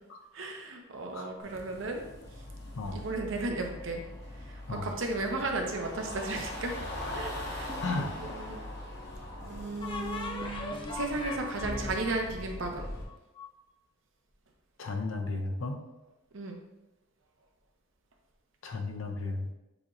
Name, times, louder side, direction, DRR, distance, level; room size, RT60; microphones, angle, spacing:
voice 1, 0.3-2.0 2.9-4.0 4.4-6.7 7.1-8.6 9.4-12.9 16.3-16.6, right 2 dB, 65° right, 3 dB, 0.7 m, -35 dB
sound 1, 1.4-13.0, left 1 dB, 55° left, 1.1 m, -41 dB
sound 2, 7.7-8.5 9.8-13.5, left 3 dB, 25° left, 0.5 m, -39 dB
voice 2, 7.8-8.1 14.8-15.8 18.6-19.5, left 3 dB, 70° left, 4 dB, 0.6 m, -34 dB
6.9 x 3.0 x 2.5 m, 0.99 s
head